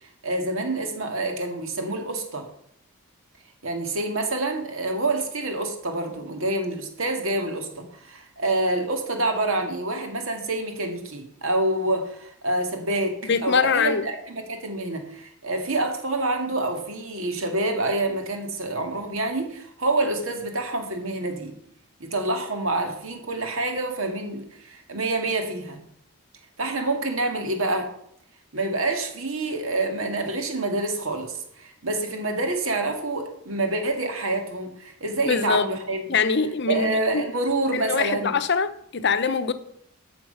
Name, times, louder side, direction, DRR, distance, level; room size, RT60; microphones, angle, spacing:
voice 1, 0.0-2.5 3.6-21.5 22.0-25.8 26.6-27.9 28.5-36.1 36.7-38.4, right 2 dB, 65° right, 2.0 m, -27 dB
voice 2, 13.2-14.1 35.2-35.7 36.1-37.3 37.7-39.5, left 5 dB, 50° left, 0.8 m, -23 dB
13.5 x 6.0 x 5.6 m
head